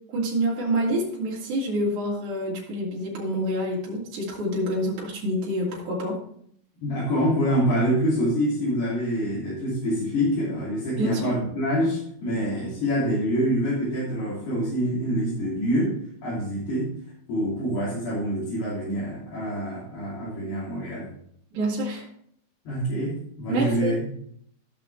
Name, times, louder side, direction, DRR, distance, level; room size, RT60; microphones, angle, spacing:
voice 1, 0.1-6.2 11.0-11.3 21.5-22.1 23.5-24.0, right 1 dB, 50° right, -5 dB, 3.9 m, -27 dB
voice 2, 6.8-15.9 16.2-16.9 17.3-21.1 22.6-24.1, equal, 70° left, -10 dB, 5.0 m, -26 dB
15.5 x 6.0 x 3.4 m, 0.66 s
omnidirectional pair, 4.8 m